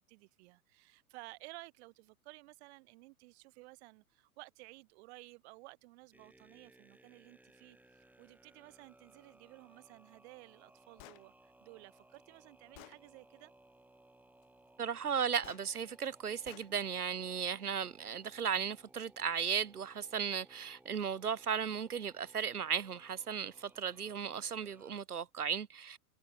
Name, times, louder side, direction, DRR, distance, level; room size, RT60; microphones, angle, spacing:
voice 1, 0.1-13.5, right 24 dB, 45° right, 3.7 m, -55 dB
sound 1, 6.1-25.0, right 1 dB, 5° right, 4.0 m, -63 dB
Gunshot gunfire, 11.0-11.2 12.1-12.2 12.8-13.0 15.4-15.7 16.5-16.7, left 34 dB, 40° left, 5.0 m, -53 dB
voice 2, 14.8-26.0, right 7 dB, 90° right, 0.8 m, -36 dB
figure-of-eight pair, 105°, 44 cm